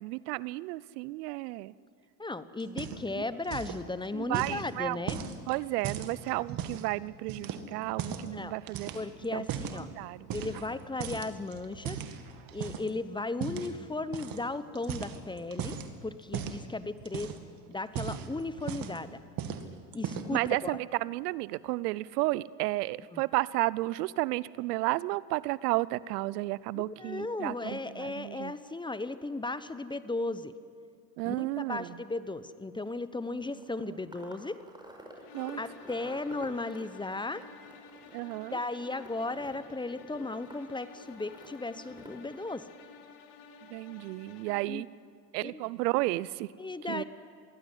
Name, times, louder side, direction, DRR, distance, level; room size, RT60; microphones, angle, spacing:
voice 1, 0.0-1.7 3.2-3.3 4.1-5.0 5.5-8.9 9.3-9.5 9.8-10.3 20.3-28.5 31.2-32.0 33.9-34.0 35.3-35.6 38.1-38.6 43.7-44.9 45.3-46.5 46.9-47.0, right 20 dB, 70° right, 21 dB, 0.7 m, -32 dB
voice 2, 2.2-5.2 8.1-8.5 8.9-9.9 10.3-12.0 12.5-17.3 17.7-19.2 19.9-20.8 23.1-23.2 26.7-30.5 31.2-34.6 35.6-37.4 38.5-42.7 44.7-44.8 45.4-45.6 46.6-47.0, left 2 dB, 10° left, 14 dB, 0.8 m, -36 dB
sound 1, 2.6-3.2 3.4-3.8 4.3-6.9 7.3-8.3 8.7-9.8 10.3-10.7 11.0-12.9 13.4-13.7 14.1-14.4 14.7-15.9 16.3-16.6 17.0-17.5 17.8-19.0 19.4-19.6 19.9-20.4, right 8 dB, 45° right, 2.1 m, -37 dB
sound 2, 33.1-42.5, right 1 dB, 10° right, 5.0 m, -52 dB
sound 3, 35.2-44.9, left 5 dB, 55° left, 2.5 m, -52 dB
22.5 x 16.0 x 9.8 m, 2.1 s
hypercardioid pair, 90°, 50 cm